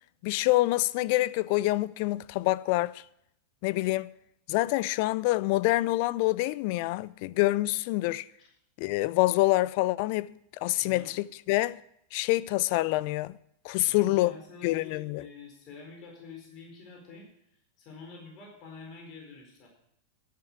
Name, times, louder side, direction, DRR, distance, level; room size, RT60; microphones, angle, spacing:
voice 1, 0.2-3.0 3.6-4.1 4.5-8.3 8.8-11.8 12.1-13.4 13.6-14.3 14.6-15.2, left 18 dB, 55° left, 0.4 m, -26 dB
voice 2, 10.8-11.1 13.9-17.3 17.8-19.7, left 4 dB, 40° left, 4.3 m, -47 dB
11.0 x 7.2 x 8.6 m
hypercardioid pair, 120°, 0 cm